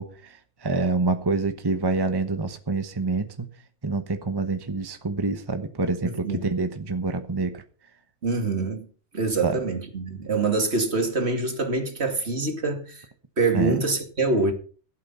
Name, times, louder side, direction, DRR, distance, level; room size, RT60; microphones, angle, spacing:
voice 1, 0.0-3.5 3.8-7.6 9.4-9.6 13.5-13.8, right 3 dB, 20° right, 1.0 m, -27 dB
voice 2, 6.0-6.5 8.2-8.9 9.1-13.0 13.4-14.5, right 3 dB, 60° right, 2.7 m, -25 dB
15.5 x 8.6 x 5.6 m
omnidirectional pair, 1.3 m